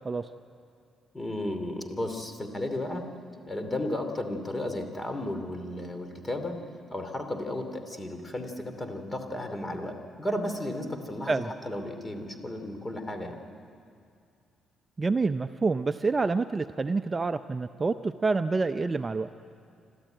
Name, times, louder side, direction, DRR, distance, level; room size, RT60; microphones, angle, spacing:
voice 1, 1.1-3.0 3.5-6.5 6.9-13.4, left 1 dB, 20° left, 6 dB, 2.7 m, -34 dB
voice 2, 15.0-19.3, right 3 dB, 30° right, 10 dB, 0.5 m, -27 dB
27.5 x 13.0 x 9.1 m, 2.4 s
cardioid pair, 90°, 0 cm